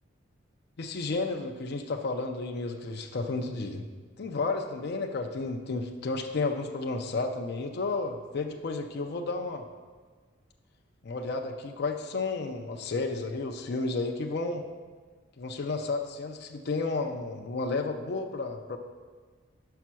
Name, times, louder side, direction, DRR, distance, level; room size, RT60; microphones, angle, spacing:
voice 1, 0.8-3.8 4.2-9.6 11.0-14.6 15.4-18.8, left 3 dB, 55° left, 3 dB, 0.5 m, -32 dB
5.7 x 5.2 x 6.0 m, 1.5 s
head